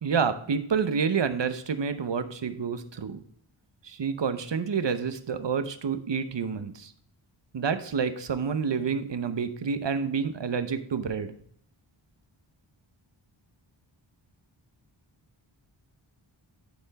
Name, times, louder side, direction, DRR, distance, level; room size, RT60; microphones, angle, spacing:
voice 1, 0.0-3.2 3.8-6.9 7.5-11.3, right 6 dB, 60° right, 11 dB, 0.9 m, -28 dB
11.5 x 4.4 x 4.1 m, 0.63 s
wide cardioid pair, 55°, 49 cm